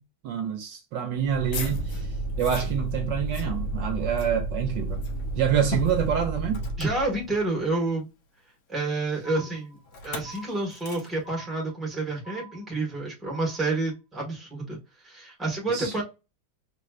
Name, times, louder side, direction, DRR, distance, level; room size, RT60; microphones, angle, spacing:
voice 1, 0.2-5.0 5.3-6.6 15.7-16.0, right 8 dB, 70° right, 1.2 m, -27 dB
sound 1, 1.2-6.6, left 4 dB, 85° left, 1.8 m, -41 dB
Motor vehicle (road), 1.3-7.7 9.9-10.4 10.7-11.1, right 2 dB, 55° left, 1.1 m, -32 dB
voice 2, 6.8-8.1 8.7-9.8 10.0-14.8 15.0-16.0, right 2 dB, ahead, 1.3 m, -29 dB
sound 2, 9.2-9.9 10.2-10.9 11.2-11.9 12.2-12.9 13.2-13.9, right 3 dB, 35° right, 2.1 m, -45 dB
5.4 x 3.1 x 2.4 m
omnidirectional pair, 2.2 m